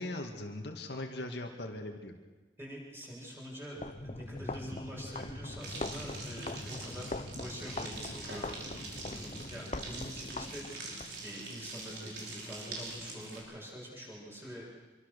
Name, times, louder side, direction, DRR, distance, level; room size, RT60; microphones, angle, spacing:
voice 1, 0.0-2.2, left 1 dB, 70° left, 3 dB, 2.2 m, -40 dB
voice 2, 2.6-3.8 4.0-14.6, equal, 15° right, -3 dB, 7.3 m, -45 dB
sound 1, 3.7-11.1, left 2 dB, 35° left, 0.9 m, -41 dB
sound 2, 5.6-13.4, right 2 dB, 65° right, 5.9 m, -44 dB
26.5 x 23.5 x 6.8 m, 1.3 s
head